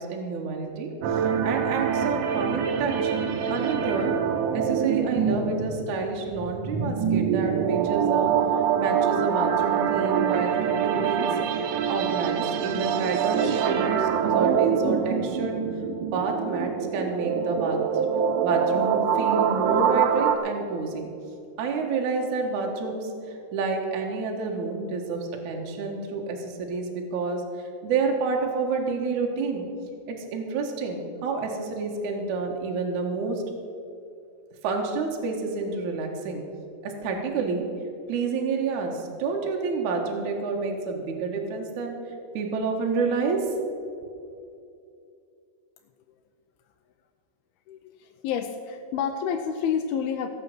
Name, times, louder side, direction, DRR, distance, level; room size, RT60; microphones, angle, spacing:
voice 1, 0.0-3.1 3.5-4.1 4.5-8.3 8.8-11.3 11.9-15.5 16.0-17.8 18.4-21.1 21.6-27.4 27.8-29.7 30.1-33.4 34.6-36.4 36.8-37.6 38.1-42.0 42.3-43.5 43.8-43.9, right 4 dB, 60° right, 1 dB, 2.4 m, -29 dB
sound 1, 1.0-20.4, right 7 dB, 90° right, 1.8 m, -25 dB
voice 2, 47.7-50.3, left 7 dB, 80° left, 5 dB, 2.4 m, -29 dB
16.5 x 6.8 x 7.7 m, 2.5 s
omnidirectional pair, 4.7 m